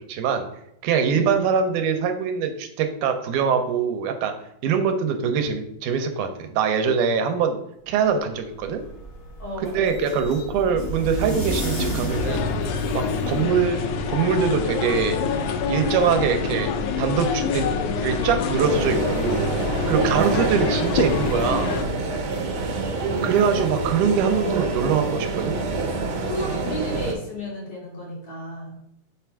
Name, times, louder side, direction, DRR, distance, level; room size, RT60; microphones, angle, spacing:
voice 1, 0.1-0.5 0.8-4.3 4.6-7.6 7.9-8.8 9.7-12.5 13.3-13.8 14.1-15.2 15.7-17.6 18.0-19.5 19.9-21.8 23.2-25.6, right 6 dB, 90° right, 6 dB, 2.2 m, -23 dB
voice 2, 1.0-1.4 9.4-10.0 13.2-13.7 20.0-20.4 22.6-22.7 23.0-23.7 24.3-24.4 26.3-28.8, left 1 dB, 55° left, -5 dB, 3.5 m, -34 dB
sound 1, 8.4-13.4, right 1 dB, 35° left, 1.5 m, -31 dB
sound 2, 12.1-21.8, left 5 dB, 80° left, 2.1 m, -26 dB
sound 3, 18.6-27.1, right 3 dB, 70° right, 2.1 m, -27 dB
6.7 x 3.4 x 4.6 m, 0.77 s
omnidirectional pair, 3.5 m